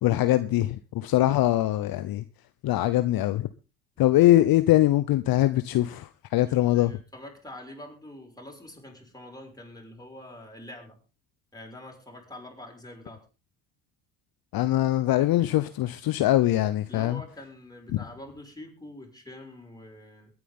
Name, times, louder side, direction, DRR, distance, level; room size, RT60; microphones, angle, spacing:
voice 1, 0.0-2.2 2.6-3.5 4.0-6.9 14.5-17.2, left 15 dB, 55° left, 0.9 m, -22 dB
voice 2, 6.4-11.0 11.5-13.3 16.9-20.3, left 1 dB, 10° left, 6.2 m, -45 dB
22.5 x 9.5 x 3.8 m
hypercardioid pair, 60°, 43 cm